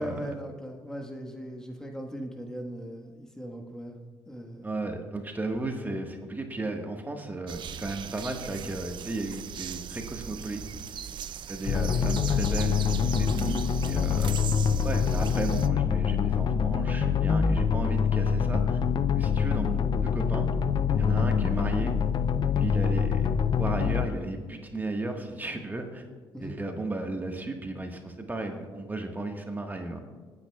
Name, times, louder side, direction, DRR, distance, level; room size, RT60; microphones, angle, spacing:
voice 1, 0.0-4.0 4.3-4.7 21.1-21.3 26.3-26.5, equal, 5° left, 2 dB, 1.4 m, -38 dB
voice 2, 4.6-10.6 11.5-14.3 14.8-18.8 19.2-20.5 21.0-22.0 22.6-26.0 26.4-30.0, right 2 dB, 20° right, 3 dB, 1.5 m, -34 dB
sound 1, 7.5-15.7, right 8 dB, 60° right, 0.5 m, -39 dB
sound 2, 11.7-24.1, left 7 dB, 55° left, 0.5 m, -25 dB
22.5 x 9.5 x 2.3 m, 1.4 s
supercardioid pair, 75°, 9 cm